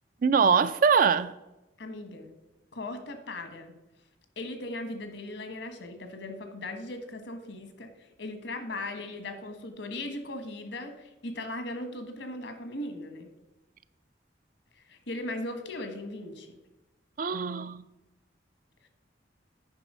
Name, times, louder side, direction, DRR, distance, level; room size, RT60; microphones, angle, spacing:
voice 1, 0.2-1.3 17.2-17.8, right 6 dB, 45° right, 14 dB, 0.4 m, -23 dB
voice 2, 1.8-2.3 2.7-3.7 4.4-7.9 8.2-13.3 14.9-16.5, left 2 dB, 75° left, 7 dB, 1.3 m, -38 dB
9.0 x 5.4 x 5.4 m, 0.97 s
head